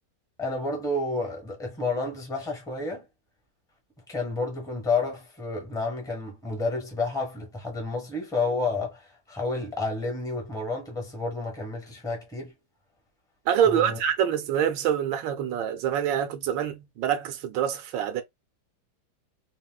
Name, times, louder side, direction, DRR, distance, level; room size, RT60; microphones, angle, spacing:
voice 1, 0.4-3.1 4.1-12.5 13.6-14.0, left 3 dB, 5° left, 0.7 m, -30 dB
voice 2, 13.5-18.2, right 9 dB, 75° right, 1.2 m, -25 dB
4.1 x 2.1 x 2.3 m
omnidirectional pair, 2.1 m